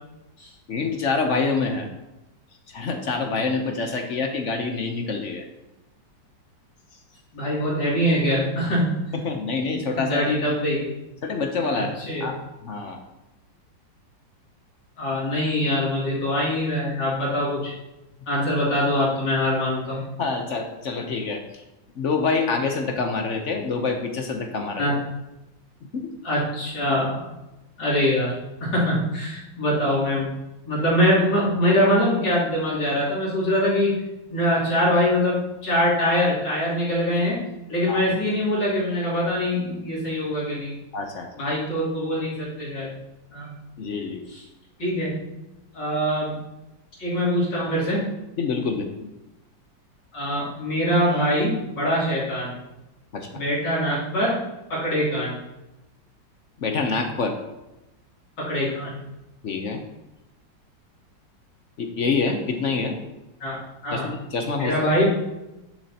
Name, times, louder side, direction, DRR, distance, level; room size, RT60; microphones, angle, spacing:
voice 1, 0.7-1.9 2.7-5.4 9.2-10.3 11.2-11.9 12.2-12.4 12.6-13.0 20.2-21.6 22.0-24.9 25.9-26.1 37.9-38.0 40.9-41.3 43.8-44.2 48.4-49.1 53.1-53.3 56.6-57.3 59.4-59.8 61.8-63.0 63.9-64.7, left 4 dB, 55° left, 4 dB, 0.9 m, -26 dB
voice 2, 7.3-8.9 9.7-10.9 11.7-12.3 15.0-17.7 18.3-20.0 24.8-25.0 26.2-27.2 27.8-30.3 30.7-34.0 34.3-37.4 37.7-40.8 41.4-42.9 43.3-43.5 44.3-44.4 44.8-45.2 45.7-46.4 47.0-48.0 50.1-52.5 53.3-54.4 54.7-55.4 58.4-58.9 63.4-64.1 64.6-65.1, equal, 70° left, -7 dB, 3.5 m, -23 dB
10.5 x 7.2 x 2.9 m, 0.98 s
omnidirectional pair, 2.0 m